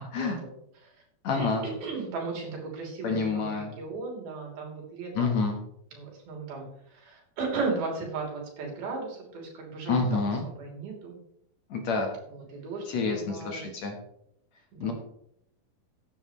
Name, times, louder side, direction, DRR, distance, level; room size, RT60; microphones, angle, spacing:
voice 1, 0.2-0.5 0.8-1.0 1.3-5.3 5.9-10.2 10.6-11.2 12.3-13.6 14.7-14.9, right 4 dB, 85° right, -1 dB, 5.0 m, -36 dB
voice 2, 1.2-1.6 3.0-3.7 5.2-5.6 9.9-10.4 11.7-12.1 12.9-13.9 14.8-14.9, left 4 dB, 60° left, 3 dB, 2.3 m, -28 dB
15.5 x 9.7 x 3.2 m, 0.75 s
omnidirectional pair, 4.2 m